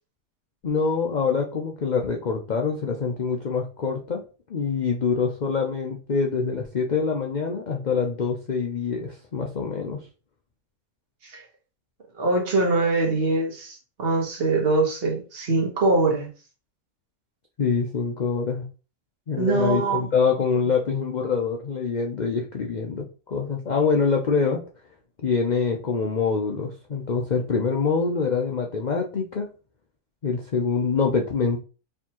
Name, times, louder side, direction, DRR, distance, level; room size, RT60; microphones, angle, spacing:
voice 1, 0.6-4.2 4.5-10.1 17.6-18.6 19.3-24.6 25.2-29.5 30.2-31.6, left 5 dB, 70° left, 0.4 m, -25 dB
voice 2, 12.2-16.3 19.4-20.1, right 2 dB, 45° right, 1.4 m, -23 dB
4.5 x 3.5 x 2.9 m
omnidirectional pair, 1.6 m